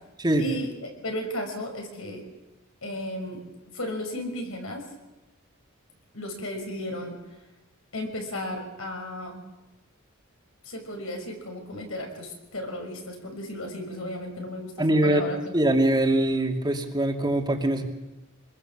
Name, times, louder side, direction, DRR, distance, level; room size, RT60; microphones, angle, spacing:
voice 1, 0.4-2.2 2.8-3.4 3.7-4.8 6.1-7.2 7.9-9.4 10.6-15.6, left 1 dB, 70° left, 2 dB, 5.9 m, -34 dB
voice 2, 14.8-15.2 15.5-17.8, right 1 dB, 20° right, 3 dB, 2.6 m, -23 dB
25.5 x 21.0 x 7.3 m, 1.0 s
head